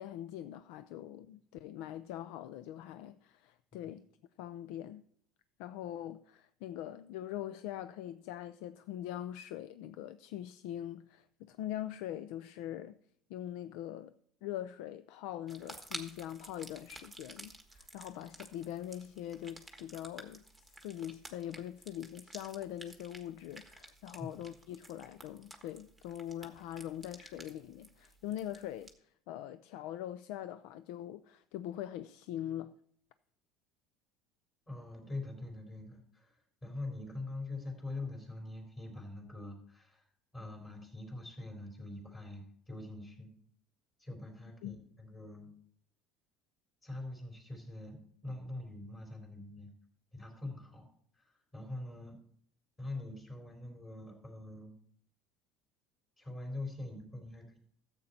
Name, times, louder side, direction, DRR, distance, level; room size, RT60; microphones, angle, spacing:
voice 1, 0.0-4.1 4.4-5.0 5.6-13.0 13.3-14.1 14.4-20.4 20.8-32.7 44.6-44.8, left 12 dB, 70° left, 0.4 m, -42 dB
sound 1, 15.5-28.9, right 2 dB, ahead, 1.4 m, -52 dB
voice 2, 34.7-43.3 44.0-45.5 46.8-49.7 50.1-50.9 51.1-52.2 52.8-54.7 56.2-57.6, left 2 dB, 20° left, 3.9 m, -44 dB
13.5 x 8.0 x 4.3 m
cardioid pair, 150°, 0 cm